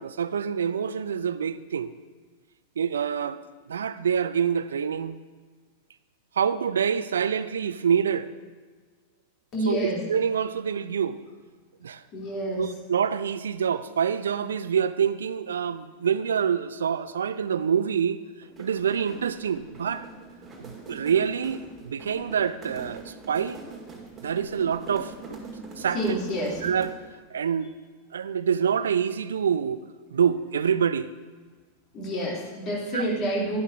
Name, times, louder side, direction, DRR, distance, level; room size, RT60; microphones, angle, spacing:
voice 1, 0.0-1.9 2.8-3.4 3.7-5.2 6.4-8.3 9.6-9.8 10.1-11.2 11.8-12.0 12.6-18.2 18.6-20.0 20.6-23.6 24.2-25.4 25.8-26.2 26.6-27.0 27.3-27.7 28.1-29.8 30.1-31.1 32.9-33.1, right 7 dB, 65° right, 14 dB, 0.4 m, -26 dB
voice 2, 9.5-10.0 12.1-12.6 25.9-26.6 31.9-33.6, right 1 dB, 35° left, -4 dB, 3.1 m, -28 dB
sound 1, 18.4-27.1, right 4 dB, 20° right, 1.8 m, -43 dB
11.0 x 11.0 x 2.7 m, 1.5 s
figure-of-eight pair, 90°, 0 cm